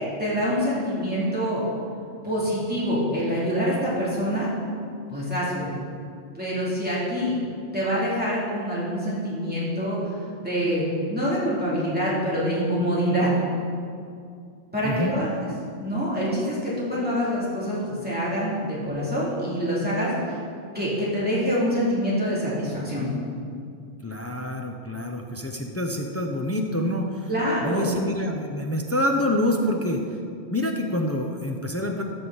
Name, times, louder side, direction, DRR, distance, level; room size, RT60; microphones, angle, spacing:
voice 1, 0.0-1.6 2.2-4.5 5.1-5.7 6.3-7.3 7.7-10.1 10.4-13.3 14.7-15.3 15.8-20.4 20.7-23.1 27.3-27.9, equal, 10° right, -9 dB, 2.6 m, -25 dB
voice 2, 14.8-15.1 24.0-27.3 27.6-30.1 30.5-32.0, left 1 dB, 20° left, 2 dB, 0.3 m, -26 dB
14.0 x 6.1 x 3.9 m, 2.4 s
omnidirectional pair, 1.2 m